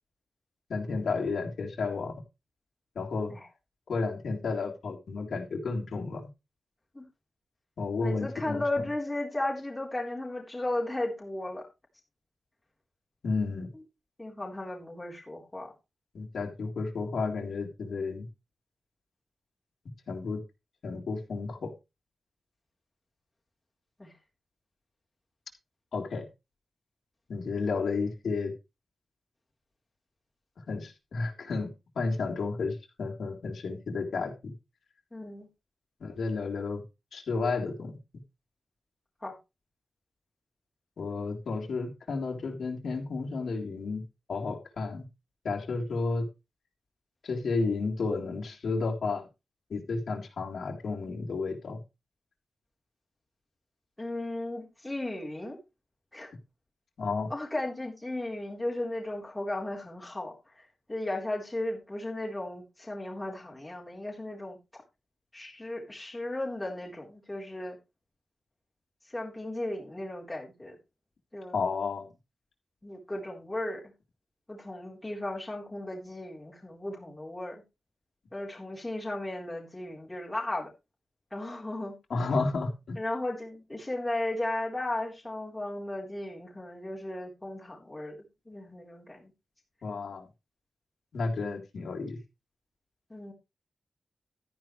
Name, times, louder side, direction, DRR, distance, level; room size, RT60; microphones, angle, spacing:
voice 1, 0.7-2.2 3.0-3.3 3.9-6.2 7.8-8.9 13.2-13.7 16.1-18.3 20.1-20.4 20.8-21.7 25.9-26.3 27.3-28.5 30.7-34.5 36.0-36.8 37.1-38.0 41.0-44.0 44.3-45.0 45.4-46.2 47.2-49.3 49.7-51.8 57.0-57.3 71.5-72.1 82.1-83.0 89.8-90.3 91.1-92.2, left 4 dB, 70° left, 0 dB, 3.6 m, -32 dB
voice 2, 8.0-11.6 14.2-15.7 24.0-24.1 35.1-35.5 39.2-39.3 54.0-55.6 56.1-56.3 57.3-64.6 65.3-67.8 69.1-70.8 71.3-71.6 72.8-73.8 74.5-77.6 78.3-80.7 81.3-81.9 83.0-88.2 88.5-89.3 93.1-93.3, left 1 dB, 10° left, -2 dB, 3.8 m, -35 dB
13.5 x 10.5 x 3.2 m, 0.27 s
wide cardioid pair, 155°, 0 cm